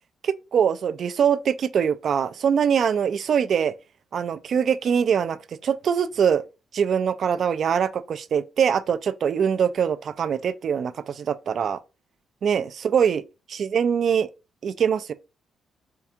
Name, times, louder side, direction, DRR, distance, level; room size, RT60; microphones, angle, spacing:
voice 1, 0.2-3.7 4.1-5.4 5.6-6.4 6.7-11.8 12.4-13.2 13.5-14.3 14.6-15.1, right 7 dB, 60° right, 0.3 m, -23 dB
4.4 x 2.4 x 2.7 m
cardioid pair, 95°, 0 cm